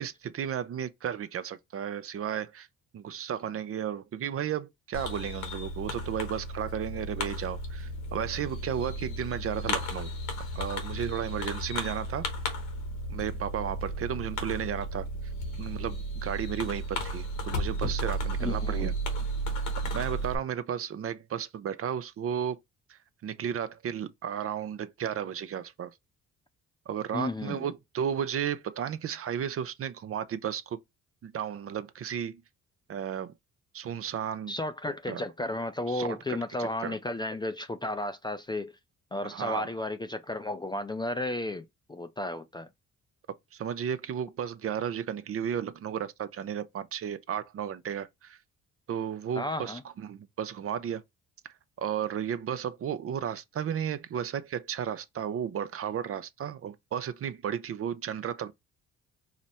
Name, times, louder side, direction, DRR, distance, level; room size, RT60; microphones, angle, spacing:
voice 1, 0.0-2.7 2.9-10.1 10.6-12.3 13.1-15.1 15.6-18.9 19.9-22.6 22.9-25.9 26.9-30.8 31.2-32.4 32.9-33.3 33.7-34.5 35.1-35.2 35.9-37.0 39.2-39.7 43.5-48.4 48.9-51.0 51.8-58.5, right 8 dB, 50° right, 0.5 m, -34 dB
Fireworks, 4.9-20.4, right 1 dB, 85° left, 1.2 m, -34 dB
voice 2, 18.4-18.9 27.1-27.6 34.5-38.7 39.1-42.7 49.3-49.8, left 2 dB, 15° left, 0.3 m, -33 dB
4.8 x 2.0 x 4.2 m
cardioid pair, 90°, 30 cm